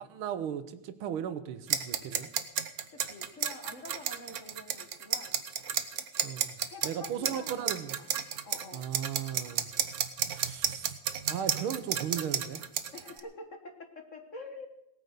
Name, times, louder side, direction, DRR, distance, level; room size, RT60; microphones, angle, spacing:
voice 1, 0.0-2.3 6.2-6.6 6.8-8.0 8.7-9.7 10.3-10.9 11.3-12.6, right 9 dB, 75° right, 12 dB, 1.7 m, -36 dB
sound 1, 1.7-13.2, right 8 dB, 55° right, 1.2 m, -32 dB
voice 2, 2.9-5.4 6.7-8.1 8.4-8.9 12.9-14.7, left 2 dB, 40° left, 5 dB, 1.5 m, -47 dB
18.5 x 9.2 x 6.7 m, 0.89 s
omnidirectional pair, 2.4 m